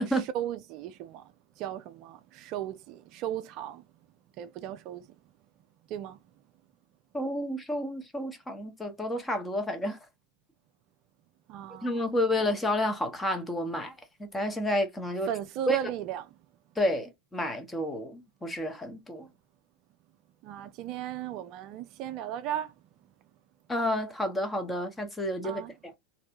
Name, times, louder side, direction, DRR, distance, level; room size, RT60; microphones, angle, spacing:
voice 1, 0.1-3.8 4.4-5.1 5.9-6.2 11.5-12.1 15.3-16.3 20.4-22.7 25.4-25.7, right 11 dB, 45° right, 0.4 m, -36 dB
voice 2, 7.1-10.0 11.8-13.9 14.2-15.3 15.7-15.8 16.8-19.3 23.7-26.0, left 1 dB, 10° left, 1.0 m, -30 dB
3.2 x 2.6 x 2.8 m
figure-of-eight pair, 90°, 0 cm